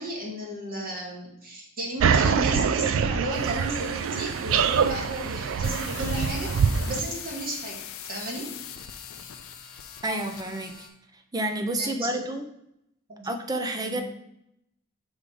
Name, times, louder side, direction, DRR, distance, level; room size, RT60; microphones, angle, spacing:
voice 1, 0.0-8.5 11.7-12.2 13.1-13.3 13.8-14.0, right 1 dB, 45° right, -2 dB, 1.7 m, -34 dB
sound 1, 2.0-7.0, right 6 dB, 65° right, 0.3 m, -24 dB
sound 2, 3.3-10.9, left 5 dB, 45° left, 0.9 m, -48 dB
sound 3, 5.6-10.8, left 11 dB, 70° left, 0.4 m, -41 dB
voice 2, 10.0-10.9 11.3-12.4 13.2-14.0, right 1 dB, 20° right, 6 dB, 0.6 m, -29 dB
5.2 x 3.8 x 4.8 m, 0.80 s
head